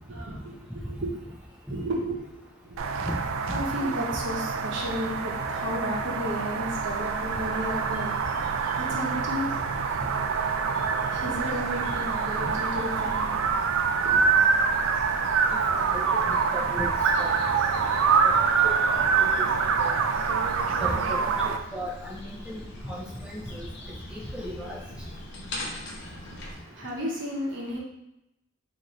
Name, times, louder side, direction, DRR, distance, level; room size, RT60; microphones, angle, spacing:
voice 1, 0.1-1.3 1.7-2.8 3.5-8.1 8.8-9.5 11.1-13.3 14.0-14.2 25.6-27.8, equal, 60° right, -2 dB, 0.8 m, -33 dB
sound 1, 2.8-21.6, right 5 dB, 75° right, 0.3 m, -25 dB
sound 2, 6.7-26.5, left 1 dB, 60° left, 0.6 m, -43 dB
voice 2, 15.9-16.9 17.2-17.4 18.6-19.5 19.8-19.9 20.8-23.7 24.1-24.8, equal, 5° right, -4 dB, 0.4 m, -36 dB
3.8 x 2.6 x 3.1 m, 0.87 s
head